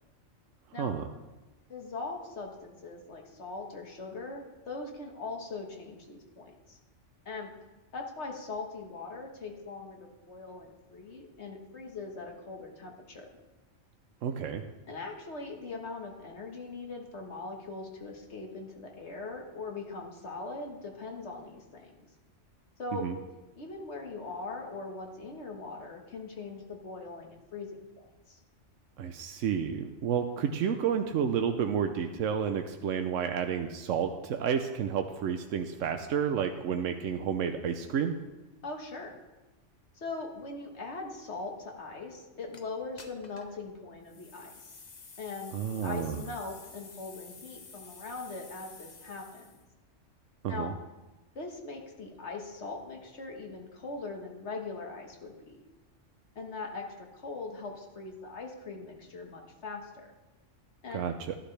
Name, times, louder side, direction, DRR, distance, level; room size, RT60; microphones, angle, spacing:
voice 1, 0.8-1.1 14.2-14.6 23.0-23.1 29.0-38.1 45.5-46.2 50.4-50.7 60.9-61.3, right 7 dB, 85° right, 6 dB, 1.0 m, -30 dB
voice 2, 1.7-6.8 7.3-7.5 7.9-13.3 14.9-22.1 22.8-23.1 23.6-28.4 38.6-39.2 40.0-44.8 45.2-49.5 50.5-50.7 51.4-55.6 56.4-60.1 60.8-61.1, left 3 dB, 65° left, 2 dB, 1.7 m, -41 dB
sound 1, 42.5-42.6 43.0-43.6 44.0-49.6, left 4 dB, 40° left, 0.9 m, -51 dB
13.5 x 11.5 x 3.3 m, 1.1 s
omnidirectional pair, 1.3 m